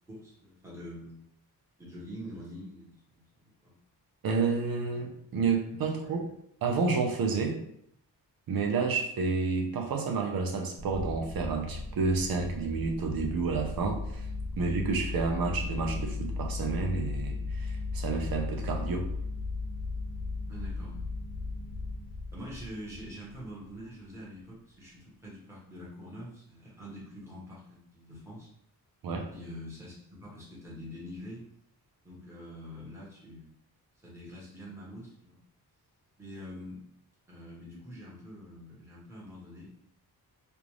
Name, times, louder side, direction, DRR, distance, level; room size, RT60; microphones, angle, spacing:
voice 1, 0.1-1.2 1.8-3.7 6.0-6.2 20.5-21.1 22.3-28.5 29.3-31.4 32.0-33.5 34.0-35.4 36.2-36.8 37.3-39.7, equal, 5° right, -8 dB, 1.2 m, -45 dB
voice 2, 4.2-6.2 6.6-7.6 8.5-14.3 14.6-19.1 29.0-29.3, right 4 dB, 70° right, 2 dB, 0.7 m, -30 dB
sound 1, 10.8-23.6, left 3 dB, 30° right, 1.4 m, -36 dB
3.3 x 2.5 x 3.0 m, 0.72 s
wide cardioid pair, 165°, 37 cm